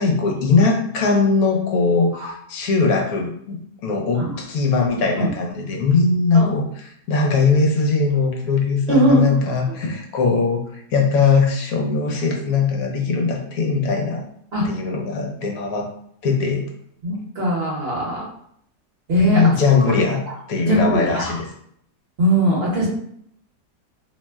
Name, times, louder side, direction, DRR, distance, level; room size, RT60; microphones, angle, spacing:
voice 1, 0.0-6.6 7.1-10.6 10.9-14.3 14.6-15.9 16.2-16.7 19.2-20.2 20.5-21.4, left 4 dB, 70° left, 1 dB, 1.1 m, -20 dB
voice 2, 8.9-9.4 14.5-14.7 17.0-18.2 19.1-20.1 20.6-21.3 22.2-22.9, equal, 45° right, -4 dB, 1.0 m, -20 dB
2.8 x 2.1 x 3.3 m, 0.67 s
omnidirectional pair, 1.8 m